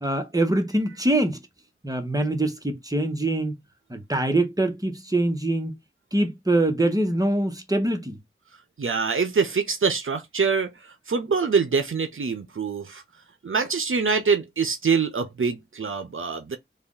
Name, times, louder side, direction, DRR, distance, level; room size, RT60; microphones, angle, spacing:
voice 1, 0.0-1.4 1.8-3.6 3.9-5.7 6.1-8.2, right 1 dB, 15° right, 1.1 m, -24 dB
voice 2, 8.8-13.0 13.4-16.6, right 5 dB, 80° right, 0.6 m, -25 dB
3.4 x 2.3 x 3.8 m
wide cardioid pair, 45°, 21 cm